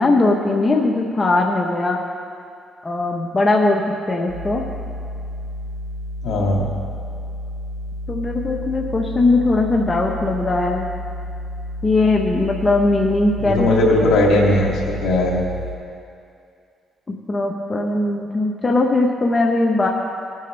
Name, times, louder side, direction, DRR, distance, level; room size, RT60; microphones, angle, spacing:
voice 1, 0.0-2.0 2.8-4.6 8.1-10.9 11.8-13.7 17.3-19.9, left 2 dB, 25° left, 0 dB, 1.1 m, -19 dB
sound 1, 4.3-15.7, left 1 dB, 55° right, 3.6 m, -31 dB
voice 2, 6.2-6.7 13.4-15.4, left 1 dB, 75° left, -3 dB, 3.0 m, -18 dB
20.0 x 9.2 x 3.4 m, 2.4 s
cardioid pair, 90°, 0 cm